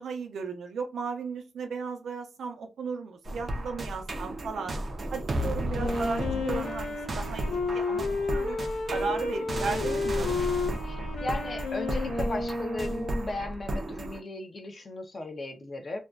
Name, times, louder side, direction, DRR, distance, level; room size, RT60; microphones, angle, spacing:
voice 1, 0.0-4.8 5.1-8.6 8.9-10.4, right 5 dB, 80° right, 0.6 m, -35 dB
sound 1, 3.2-14.2, right 1 dB, 35° right, 0.4 m, -34 dB
Wind instrument woodwind instrument, 5.7-13.4, left 3 dB, 85° left, 0.5 m, -32 dB
voice 2, 10.2-10.6 10.8-16.0, left 2 dB, 35° left, 0.5 m, -37 dB
2.5 x 2.2 x 2.2 m
wide cardioid pair, 160°, 0 cm